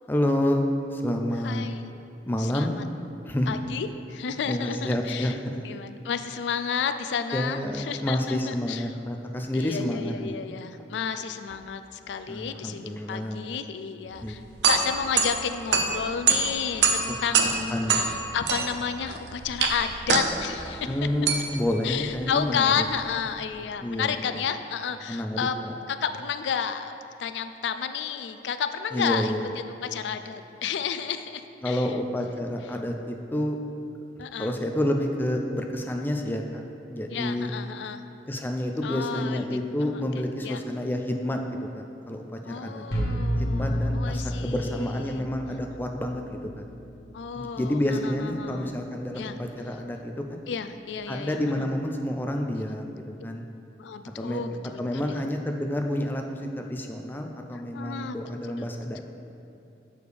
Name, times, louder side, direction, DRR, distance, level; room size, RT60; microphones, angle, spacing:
voice 1, 0.1-0.6 0.9-1.6 2.3-2.8 3.2-3.6 4.5-5.6 7.3-10.3 12.3-13.6 14.2-14.3 17.1-17.2 17.7-18.0 20.9-22.8 23.8-24.1 25.1-25.7 28.9-29.4 31.6-33.6 34.4-36.6 36.9-37.5 38.3-41.4 41.7-46.6 47.3-50.4 51.1-53.4 54.2-54.4 54.8-59.0, left 1 dB, 10° left, 3 dB, 0.4 m, -29 dB
voice 2, 1.4-1.9 2.4-2.8 3.5-5.4 5.6-8.9 9.5-14.4 14.7-21.0 21.8-26.9 27.2-32.0 34.2-34.5 37.1-38.0 38.8-40.6 42.4-45.3 47.1-48.7 49.2-49.4 50.5-51.7 53.8-55.2 57.5-58.2 58.4-58.7, left 7 dB, 85° left, 10 dB, 0.3 m, -32 dB
sound 1, 14.2-23.3, right 5 dB, 70° right, 0.5 m, -26 dB
sound 2, 42.9-48.7, equal, 65° left, 1.4 m, -32 dB
6.8 x 6.4 x 3.4 m, 2.7 s
head